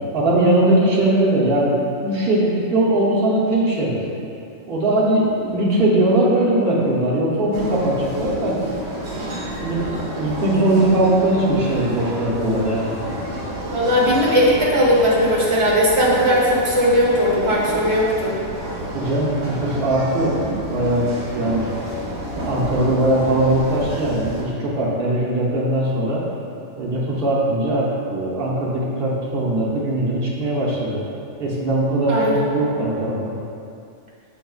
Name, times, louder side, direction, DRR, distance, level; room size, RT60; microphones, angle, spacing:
voice 1, 0.1-1.7 2.0-4.0 4.7-8.6 9.6-12.9 18.9-20.4 20.7-21.7 22.4-26.2 26.8-31.0 31.4-33.3, right 1 dB, 50° right, -6 dB, 1.0 m, -20 dB
sound 1, 7.5-24.4, right 1 dB, 75° right, 1.2 m, -30 dB
voice 2, 13.7-18.4 32.1-32.5, equal, 25° right, -6 dB, 0.9 m, -18 dB
6.3 x 3.6 x 2.3 m, 2.5 s
omnidirectional pair, 1.3 m